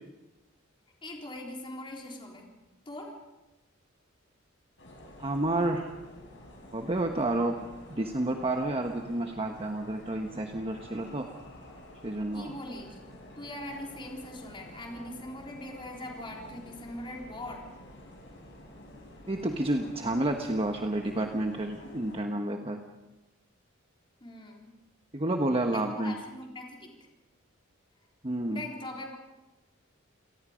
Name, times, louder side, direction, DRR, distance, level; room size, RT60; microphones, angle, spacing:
voice 1, 1.0-2.5 2.9-3.1 12.3-13.0 13.4-17.7 24.2-24.8 25.7-26.9 28.5-29.2, left 1 dB, 25° left, 0 dB, 3.9 m, -41 dB
sound 1, 4.8-22.2, left 1 dB, 65° left, 6.6 m, -49 dB
voice 2, 5.2-5.9 6.7-11.3 12.0-12.5 19.3-22.8 25.1-26.1 28.2-28.6, right 1 dB, 30° right, 3 dB, 1.3 m, -30 dB
28.5 x 19.0 x 5.2 m, 1.1 s
head